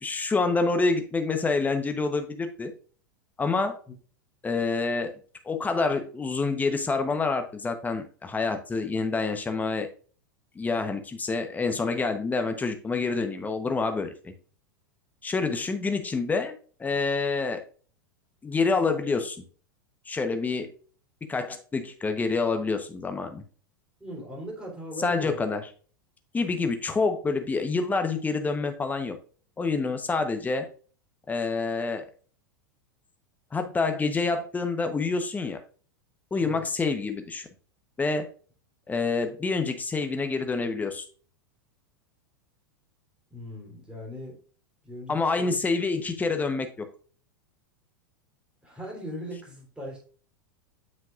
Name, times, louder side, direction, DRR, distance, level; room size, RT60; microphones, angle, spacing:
voice 1, 0.0-2.7 3.4-3.8 4.4-5.1 5.4-9.9 10.5-14.3 15.2-16.5 16.8-17.6 18.4-19.4 20.1-20.7 21.3-23.4 25.0-25.6 26.3-29.2 29.6-30.7 31.3-32.1 33.5-35.6 36.3-37.5 38.0-38.3 38.9-41.0 45.1-46.9, left 4 dB, 15° left, 7 dB, 1.0 m, -27 dB
voice 2, 24.0-25.5 36.4-36.7 43.3-44.4 44.8-45.6 48.6-50.1, equal, 10° right, -3 dB, 3.6 m, -39 dB
7.4 x 6.0 x 2.5 m, 0.41 s
hypercardioid pair, 95°, 11 cm